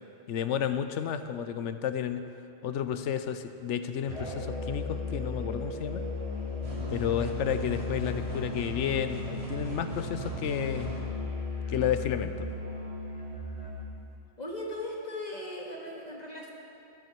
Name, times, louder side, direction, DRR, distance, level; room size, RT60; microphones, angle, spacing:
voice 1, 0.3-2.3 2.6-6.1 6.9-10.9 11.7-12.5, left 8 dB, 85° left, 10 dB, 1.0 m, -31 dB
Musical instrument, 4.1-14.0, left 3 dB, 30° right, 1.6 m, -36 dB
sound 1, 6.6-11.0, right 3 dB, 65° right, 2.7 m, -39 dB
voice 2, 14.4-16.5, left 1 dB, 35° left, -2 dB, 1.8 m, -38 dB
13.5 x 12.5 x 4.6 m, 2.7 s
omnidirectional pair, 1.2 m